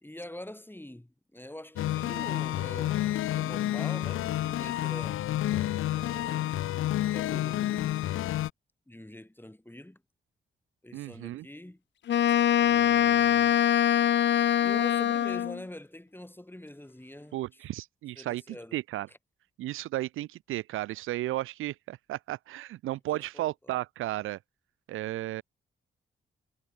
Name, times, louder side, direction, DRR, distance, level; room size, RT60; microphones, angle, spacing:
voice 1, 0.0-5.2 5.9-6.6 7.1-8.0 8.9-10.0 10.8-11.8 12.6-13.6 14.6-17.4 18.2-18.8 22.9-23.8, left 1 dB, 10° left, 3.6 m, -45 dB
sound 1, 1.8-8.5, left 13 dB, 80° left, 1.0 m, -30 dB
voice 2, 10.9-11.5 17.3-19.1 19.6-24.4 24.9-25.4, right 15 dB, 80° right, 0.5 m, -34 dB
Wind instrument woodwind instrument, 12.1-15.6, left 10 dB, 60° left, 0.6 m, -23 dB
supercardioid pair, 40°, 21 cm